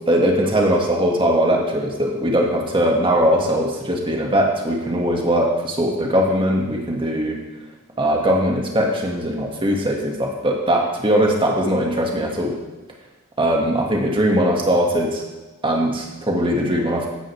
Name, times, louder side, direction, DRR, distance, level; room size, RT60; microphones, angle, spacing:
voice 1, 0.1-7.4 8.0-12.5 13.4-15.2 15.6-17.1, equal, 25° right, -1 dB, 2.2 m, -20 dB
16.0 x 11.0 x 3.6 m, 1.2 s
head